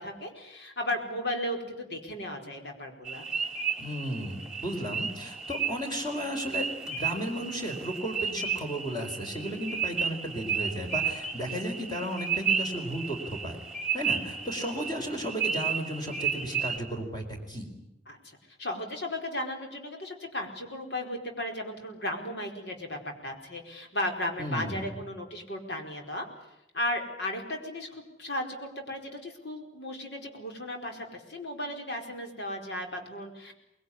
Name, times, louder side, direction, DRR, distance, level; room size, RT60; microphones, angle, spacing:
voice 1, 0.0-3.3 18.1-26.2 26.7-33.5, left 1 dB, 65° left, 3 dB, 4.8 m, -35 dB
sound 1, 3.1-16.8, right 6 dB, 5° right, 2.9 m, -33 dB
voice 2, 3.8-13.6 13.9-17.7 24.4-25.0, equal, 25° left, 3 dB, 4.5 m, -34 dB
25.0 x 21.0 x 10.0 m, 0.83 s
head